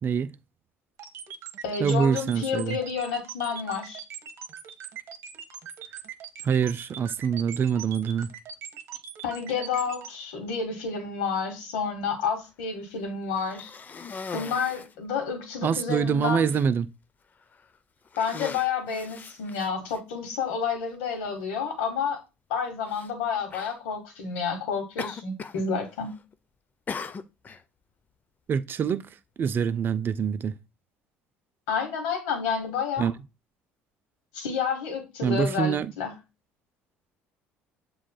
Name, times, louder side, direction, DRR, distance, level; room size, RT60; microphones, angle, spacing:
voice 1, 0.0-0.3 1.8-2.8 6.4-8.3 15.6-16.9 28.5-29.1 29.4-30.5 33.0-33.1 35.2-35.9, right 7 dB, 40° right, 0.4 m, -25 dB
sound 1, 1.0-10.1, right 9 dB, 60° right, 0.9 m, -40 dB
voice 2, 1.6-4.0 9.2-13.7 14.3-16.5 18.2-22.2 22.5-26.1 31.7-33.1 34.3-36.1, left 6 dB, 85° left, 1.7 m, -30 dB
Cough, 13.3-15.0 15.7-15.8 16.2-16.7 17.4-17.7 18.1-20.0 20.9-21.0 22.9-23.1 23.5-23.8 25.0-25.7 25.9-26.3 26.9-27.6, left 5 dB, 30° left, 0.5 m, -39 dB
7.3 x 3.0 x 2.3 m
supercardioid pair, 80°, 5 cm